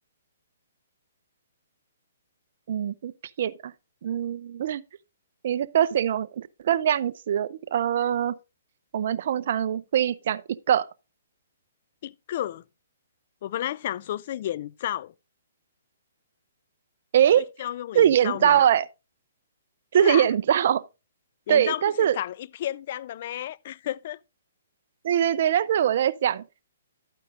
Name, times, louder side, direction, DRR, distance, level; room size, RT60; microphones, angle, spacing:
voice 1, 2.7-3.1 3.4-3.7 4.0-4.8 5.4-8.3 8.9-10.4 10.7-10.9 17.1-17.4 17.9-18.9 19.9-20.8 21.5-22.2 25.0-26.4, right 10 dB, 55° right, 0.6 m, -22 dB
voice 2, 12.0-12.6 13.4-15.1 17.4-18.6 20.0-20.3 21.5-24.2, left 12 dB, 50° left, 0.4 m, -32 dB
11.5 x 9.0 x 2.4 m
hypercardioid pair, 135°, 0 cm